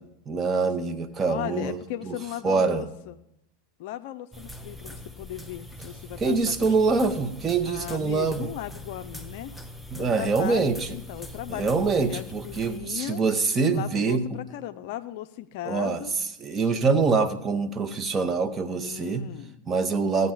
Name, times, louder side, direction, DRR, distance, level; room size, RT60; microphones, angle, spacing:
voice 1, 0.3-1.8 2.0-2.2 2.4-2.9 6.2-8.5 9.9-11.0 11.5-14.4 15.7-16.0 16.4-19.2 19.7-20.3, right 4 dB, 25° right, 9 dB, 1.0 m, -25 dB
voice 2, 1.3-3.2 3.8-7.0 7.6-9.5 10.0-13.2 13.7-16.1 16.5-16.8 18.7-19.6, left 13 dB, 50° left, 10 dB, 0.5 m, -37 dB
sound 1, 4.3-12.8, left 1 dB, ahead, 0.7 m, -42 dB
16.0 x 9.2 x 3.7 m, 0.84 s
figure-of-eight pair, 85°, 0 cm